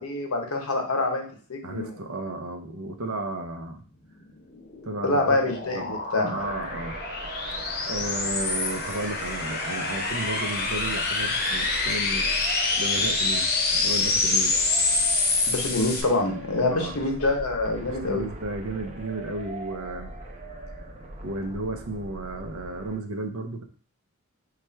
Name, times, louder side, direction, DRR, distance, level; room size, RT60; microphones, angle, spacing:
voice 1, 0.0-2.0 5.0-6.4 15.5-18.2, left 2 dB, 75° left, 2 dB, 0.9 m, -26 dB
voice 2, 1.6-3.8 4.8-5.4 5.7-6.0 6.3-7.0 7.5-12.4 12.8-14.6 16.7-17.0 17.9-20.1 21.2-23.6, right 2 dB, 65° right, 6 dB, 0.6 m, -33 dB
sound 1, 4.2-16.0, left 3 dB, 45° left, 0.7 m, -27 dB
sound 2, 6.4-23.0, right 2 dB, 30° right, 0.6 m, -40 dB
3.2 x 2.4 x 4.4 m, 0.42 s
head